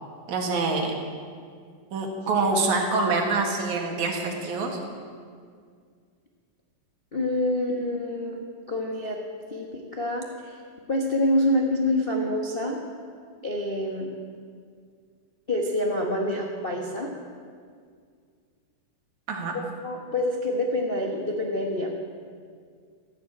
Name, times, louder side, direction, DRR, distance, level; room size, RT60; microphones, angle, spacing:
voice 1, 0.3-0.9 1.9-4.8 19.3-19.6, right 3 dB, 75° right, 2 dB, 3.2 m, -25 dB
voice 2, 7.1-9.2 9.5-10.6 10.9-12.8 13.4-14.1 15.5-17.1 19.5-21.9, left 1 dB, 55° left, -1 dB, 0.6 m, -27 dB
13.5 x 11.5 x 8.6 m, 2.1 s
omnidirectional pair, 3.5 m